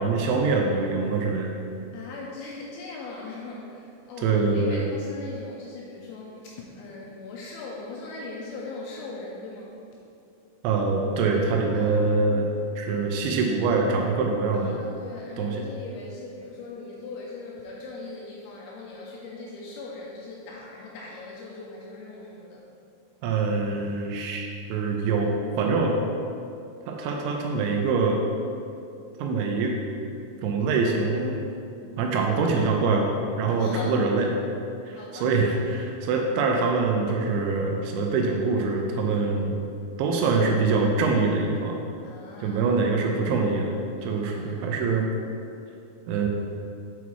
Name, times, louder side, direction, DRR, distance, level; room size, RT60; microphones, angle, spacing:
voice 1, 0.0-1.6 4.2-4.8 10.6-12.5 12.8-14.8 15.4-15.5 23.2-26.0 26.9-28.2 29.2-29.8 30.4-31.4 32.0-33.1 33.4-34.3 34.9-39.6 40.0-41.8 42.4-43.7 44.0-45.1 46.1-46.3, right 4 dB, 80° right, 1 dB, 2.8 m, -24 dB
voice 2, 1.9-10.0 11.8-11.9 14.5-22.7 33.6-34.1 34.9-35.4 42.0-42.6 44.0-44.6, left 3 dB, 80° left, -3 dB, 2.7 m, -39 dB
8.1 x 4.0 x 4.6 m, 2.5 s
omnidirectional pair, 5.7 m